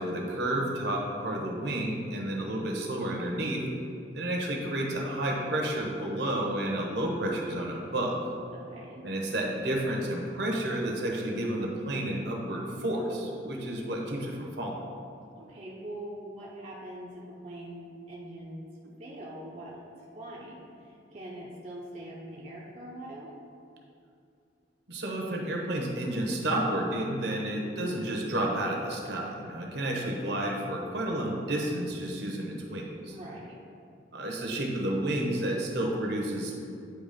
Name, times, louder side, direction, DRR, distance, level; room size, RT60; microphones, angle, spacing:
voice 1, 0.0-3.6 4.1-8.2 9.0-14.8 24.9-33.1 34.1-36.5, right 1 dB, 65° right, -1 dB, 1.0 m, -31 dB
voice 2, 2.2-2.6 8.5-9.1 15.3-18.7 19.0-19.9 20.1-23.3 27.6-27.9 29.7-29.8 33.1-33.6, right 1 dB, 35° right, -5 dB, 0.7 m, -43 dB
9.0 x 3.0 x 5.1 m, 2.5 s
head